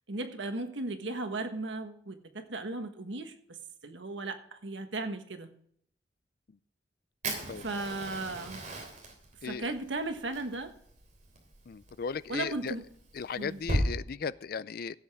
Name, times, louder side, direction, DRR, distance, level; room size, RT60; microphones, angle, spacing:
voice 1, 0.1-3.3 3.8-5.5 7.6-8.6 9.4-10.7 12.3-12.8 13.4-13.6, right 2 dB, 80° right, 6 dB, 1.4 m, -36 dB
Fire, 7.2-13.9, right 1 dB, 40° right, 3.2 m, -37 dB
voice 2, 11.7-12.7 13.1-14.9, left 6 dB, 55° left, 17 dB, 0.4 m, -36 dB
16.5 x 7.9 x 3.6 m, 0.67 s
head